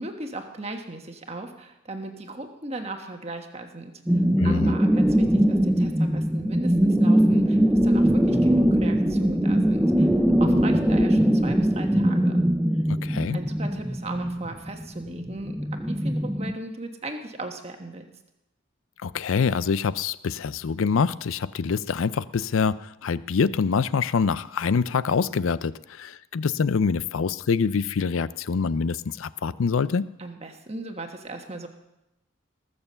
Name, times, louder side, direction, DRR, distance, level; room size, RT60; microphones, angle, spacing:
voice 1, 0.0-10.1 10.4-12.4 13.3-18.1 30.2-31.7, right 2 dB, 30° right, 4 dB, 1.3 m, -37 dB
sound 1, 4.1-16.5, equal, 5° right, 0.5 m, -21 dB
voice 2, 4.4-4.8 13.0-13.4 19.0-30.1, left 5 dB, 80° left, 17 dB, 0.5 m, -25 dB
19.5 x 6.9 x 6.8 m, 0.92 s
head